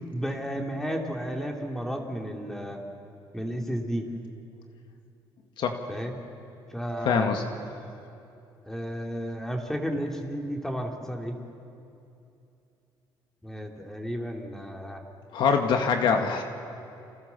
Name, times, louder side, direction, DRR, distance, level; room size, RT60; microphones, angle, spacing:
voice 1, 0.1-2.8 3.3-4.1 5.9-6.2 6.7-7.3 8.7-11.4 13.4-15.0, equal, 5° left, 1 dB, 2.9 m, -32 dB
voice 2, 7.0-7.4 15.3-16.4, left 6 dB, 65° left, 4 dB, 2.2 m, -24 dB
29.5 x 26.5 x 7.1 m, 2.7 s
cardioid pair, 130°, 9 cm